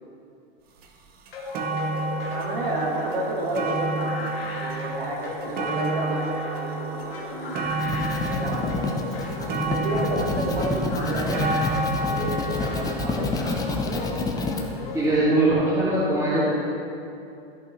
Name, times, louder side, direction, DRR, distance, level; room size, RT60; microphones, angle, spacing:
sound 1, 0.8-0.9 1.3-14.4 15.2-15.3, right 3 dB, 30° right, 0.8 m, -31 dB
sound 2, 1.3-15.2, left 3 dB, 75° left, 1.6 m, -36 dB
voice 1, 2.3-7.7 8.2-8.9 9.6-13.6 13.9-14.0, right 2 dB, 70° right, -1 dB, 1.9 m, -31 dB
sound 3, 7.6-14.6, left 3 dB, 10° left, 0.6 m, -28 dB
voice 2, 14.9-16.5, right 2 dB, 10° right, -11 dB, 1.8 m, -21 dB
12.5 x 5.3 x 3.1 m, 2.6 s
hypercardioid pair, 115°, 30 cm